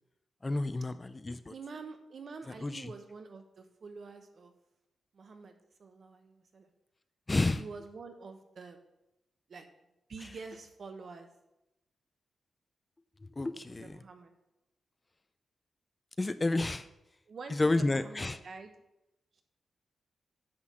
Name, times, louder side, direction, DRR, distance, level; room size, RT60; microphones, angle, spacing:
voice 1, 0.4-1.5 2.5-2.9 7.3-7.6 13.2-14.0 16.2-16.9 17.5-18.4, left 2 dB, 20° left, 12 dB, 0.3 m, -30 dB
voice 2, 1.5-4.5 5.1-6.7 7.6-8.8 9.5-9.7 10.1-11.3 13.7-14.3 17.3-18.7 19.3-19.4, right 4 dB, 50° right, 6 dB, 0.9 m, -47 dB
9.8 x 4.1 x 6.1 m, 0.90 s
wide cardioid pair, 145°, 0 cm